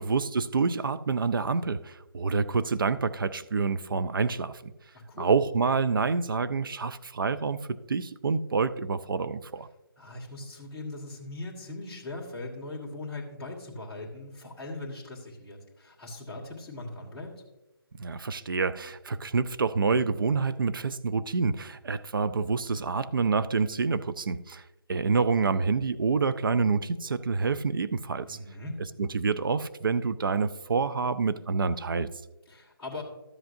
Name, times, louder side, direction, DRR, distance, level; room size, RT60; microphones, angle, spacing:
voice 1, 0.0-4.7 5.2-7.6 7.9-9.7 18.0-24.6 24.9-28.4 29.0-32.1, right 4 dB, 60° right, 12 dB, 0.5 m, -27 dB
voice 2, 4.9-5.3 10.0-17.3 28.3-28.8 32.5-33.0, left 2 dB, 10° left, -8 dB, 1.6 m, -40 dB
12.5 x 7.8 x 2.7 m, 1.0 s
figure-of-eight pair, 155°, 13 cm